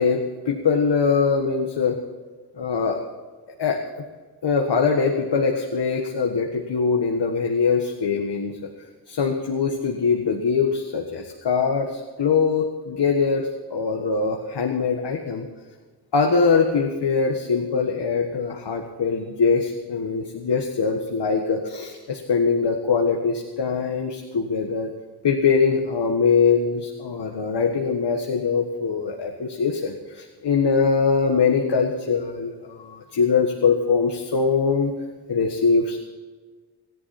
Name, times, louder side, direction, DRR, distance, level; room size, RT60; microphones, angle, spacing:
voice 1, 0.0-2.0 2.6-3.0 3.6-4.0 4.4-8.7 9.1-15.5 16.1-24.9 25.2-34.9 35.3-36.0, left 5 dB, 75° left, 3 dB, 1.7 m, -22 dB
26.0 x 11.0 x 4.4 m, 1.4 s
wide cardioid pair, 100°, 42 cm